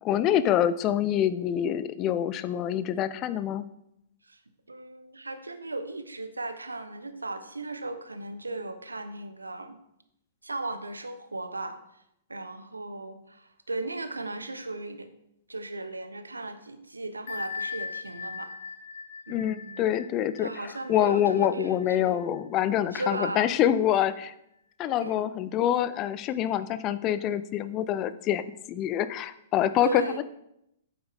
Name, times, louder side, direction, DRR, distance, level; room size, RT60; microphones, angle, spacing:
voice 1, 0.0-3.7 19.3-20.5 20.9-24.3 24.8-30.0, left 11 dB, 30° left, 14 dB, 0.5 m, -26 dB
voice 2, 4.7-9.8 10.4-12.0 12.3-15.1 15.5-18.5 19.3-19.9 20.4-22.2 22.9-23.5 25.0-25.3 29.8-30.2, right 2 dB, 80° right, 10 dB, 0.9 m, -36 dB
Bell, 17.3-22.7, left 5 dB, 60° left, 1.1 m, -40 dB
8.7 x 7.9 x 3.6 m, 0.80 s
figure-of-eight pair, 110°, 0 cm